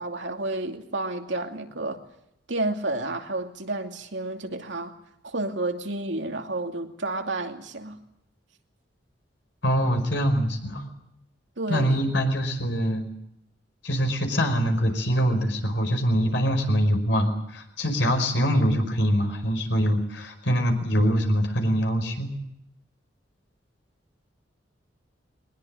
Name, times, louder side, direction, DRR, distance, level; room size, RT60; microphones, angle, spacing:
voice 1, 0.0-2.0 2.5-4.9 5.2-8.0 11.6-12.0, right 2 dB, 75° right, 2.6 m, -30 dB
voice 2, 9.6-10.8 11.7-13.0 13.8-22.3, equal, 70° left, 5.1 m, -24 dB
22.5 x 20.0 x 9.0 m
head